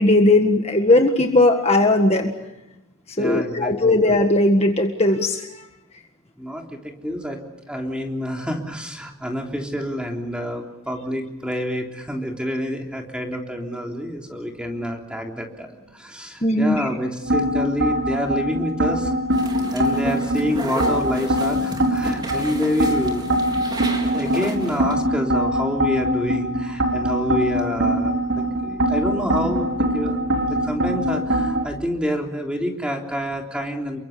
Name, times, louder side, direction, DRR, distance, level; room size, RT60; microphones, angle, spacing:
voice 1, 0.0-2.3 3.2-5.5 16.4-16.9, left 2 dB, 30° left, 4 dB, 1.7 m, -18 dB
voice 2, 3.2-4.0 6.4-7.4 7.7-19.1 19.7-30.2 30.5-34.0, equal, 5° right, 1 dB, 3.6 m, -28 dB
sound 1, 17.2-31.7, equal, 65° right, 4.2 m, -23 dB
sound 2, 19.3-24.9, right 1 dB, 20° right, 3.9 m, -33 dB
29.5 x 23.5 x 6.8 m, 0.95 s
head